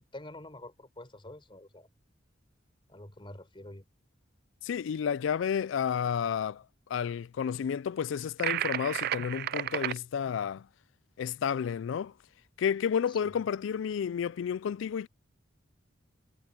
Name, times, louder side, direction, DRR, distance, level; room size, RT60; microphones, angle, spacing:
voice 1, 0.0-1.9 2.9-3.8 13.1-13.3, left 2 dB, 25° left, 4.0 m, -47 dB
voice 2, 4.6-10.7 11.2-12.1 12.6-15.1, left 7 dB, 70° left, 0.3 m, -31 dB
sound 1, 8.4-10.0, right 12 dB, 50° right, 0.3 m, -32 dB
head